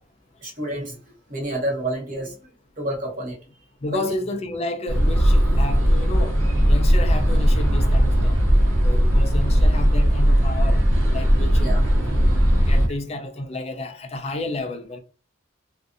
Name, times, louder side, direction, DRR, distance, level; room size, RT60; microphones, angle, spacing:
voice 1, 0.4-1.0 1.3-2.3 2.8-3.4 3.9-4.1 11.6-12.2, right 1 dB, 40° right, 1.0 m, -29 dB
voice 2, 3.8-8.5 8.8-10.8 11.1-11.7 12.2-12.3 12.7-15.0, left 2 dB, 30° left, 0.4 m, -31 dB
sound 1, 4.9-12.9, equal, 85° right, 0.7 m, -18 dB
2.5 x 2.4 x 2.5 m
head